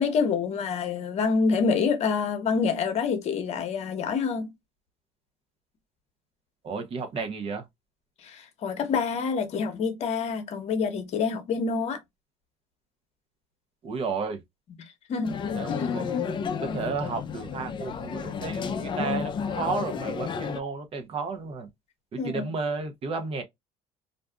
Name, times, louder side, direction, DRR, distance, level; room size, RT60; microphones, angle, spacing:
voice 1, 0.0-4.5 8.2-12.0 14.8-15.4 15.7-15.9 22.2-22.5, left 5 dB, 50° left, 0.9 m, -27 dB
voice 2, 6.6-7.7 13.8-14.4 15.5-16.1 16.4-16.5 16.7-21.7 22.1-23.4, right 4 dB, 40° right, 0.8 m, -32 dB
sound 1, 15.3-20.6, left 6 dB, 35° left, 0.4 m, -31 dB
2.5 x 2.3 x 2.3 m
supercardioid pair, 100°, 14 cm